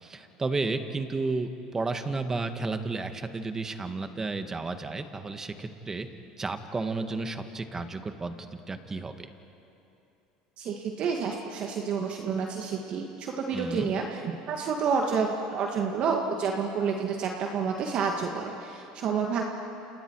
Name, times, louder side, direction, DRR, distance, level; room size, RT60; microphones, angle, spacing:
voice 1, 0.0-6.1 6.4-9.3 13.5-13.9, right 3 dB, 20° right, 8 dB, 1.8 m, -32 dB
voice 2, 10.6-19.4, right 5 dB, 50° right, 1 dB, 2.1 m, -29 dB
29.5 x 28.0 x 4.8 m, 2.8 s
supercardioid pair, 100°, 2 cm